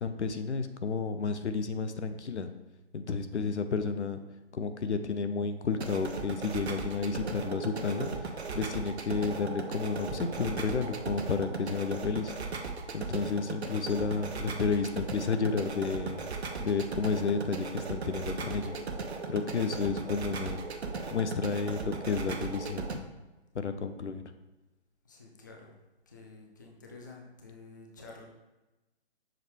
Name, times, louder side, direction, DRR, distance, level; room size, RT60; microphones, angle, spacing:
voice 1, 0.0-2.5 2.9-4.2 4.5-8.1 8.5-12.3 12.9-16.3 16.6-18.8 19.3-20.6 21.1-23.1 23.5-24.3, left 5 dB, 90° left, 9 dB, 0.7 m, -31 dB
sound 1, 5.7-23.0, right 4 dB, 70° right, 0.8 m, -37 dB
voice 2, 25.1-25.7 26.1-28.2, left 3 dB, 20° left, -1 dB, 0.4 m, -50 dB
6.3 x 4.3 x 3.5 m, 1.1 s
figure-of-eight pair, 145°, 33 cm